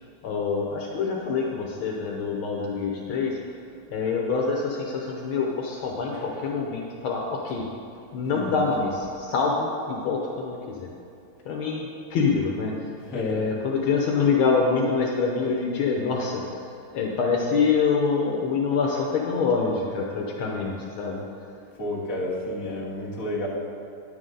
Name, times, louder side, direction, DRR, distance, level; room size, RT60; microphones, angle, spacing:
voice 1, 0.2-3.4 3.9-7.6 8.1-10.9 11.4-12.7 13.1-21.2, left 5 dB, 75° left, -1 dB, 1.6 m, -25 dB
voice 2, 8.2-8.6 12.9-13.5 21.8-23.5, left 1 dB, 40° left, -6 dB, 2.0 m, -31 dB
10.0 x 7.9 x 3.8 m, 2.5 s
omnidirectional pair, 2.3 m